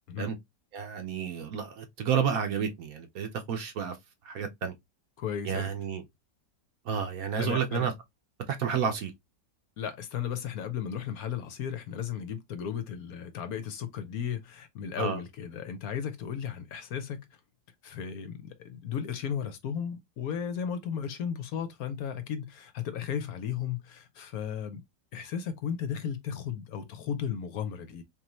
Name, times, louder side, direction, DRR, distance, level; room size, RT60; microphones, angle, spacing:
voice 1, 0.7-4.0 4.2-4.7 5.4-6.0 6.8-7.9 8.5-9.1 15.0-15.2, right 7 dB, 65° right, 1.2 m, -30 dB
voice 2, 5.2-5.7 7.4-7.9 9.8-17.2 17.8-24.8 25.1-28.0, left 8 dB, 70° left, 1.1 m, -35 dB
3.8 x 3.1 x 3.0 m
omnidirectional pair, 1.8 m